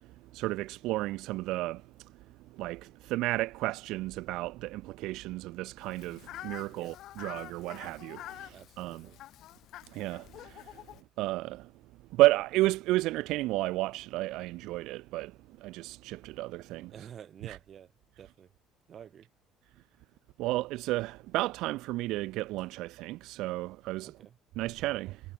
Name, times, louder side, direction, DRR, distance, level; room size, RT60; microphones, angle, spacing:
voice 1, 0.3-1.8 2.6-9.0 9.9-10.7 11.2-11.7 12.1-15.3 15.6-16.9 17.5-17.6 20.4-24.1 24.6-25.2, right 18 dB, 80° right, 0.4 m, -32 dB
Fowl, 5.8-11.0, left 13 dB, 65° left, 4.0 m, -47 dB
voice 2, 8.5-9.2 10.9-11.0 16.9-17.9 18.2-18.5 18.9-19.3 24.0-24.4, right 9 dB, 45° right, 3.5 m, -49 dB
cardioid pair, 125°, 0 cm